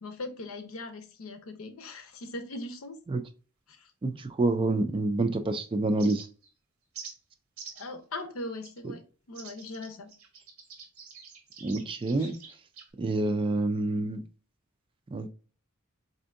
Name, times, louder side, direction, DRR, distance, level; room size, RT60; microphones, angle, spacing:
voice 1, 0.0-3.0 3.7-3.9 7.8-9.0 9.3-10.1 12.2-12.3, left 2 dB, 75° left, 0.7 m, -40 dB
voice 2, 4.0-6.3 11.6-12.6 13.0-14.2 15.1-15.3, right 2 dB, 25° right, 0.3 m, -28 dB
sound 1, 6.0-6.5 6.9-7.1 7.6-7.9 8.6-8.8 9.3-12.9, right 6 dB, 85° right, 0.9 m, -46 dB
4.3 x 2.6 x 2.5 m
head